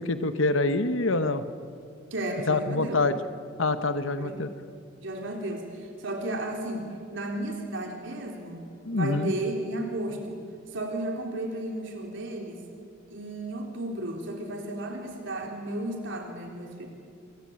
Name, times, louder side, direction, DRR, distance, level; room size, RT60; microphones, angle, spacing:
voice 1, 0.0-1.4 2.5-3.2 3.6-4.5 8.9-9.3, left 2 dB, 65° left, 11 dB, 1.2 m, -26 dB
voice 2, 2.1-3.0 4.2-4.5 5.0-6.8 7.1-8.6 8.9-10.4 10.7-12.6 13.1-16.9, right 1 dB, 60° right, 2 dB, 3.8 m, -33 dB
29.0 x 23.0 x 8.8 m, 2.6 s
head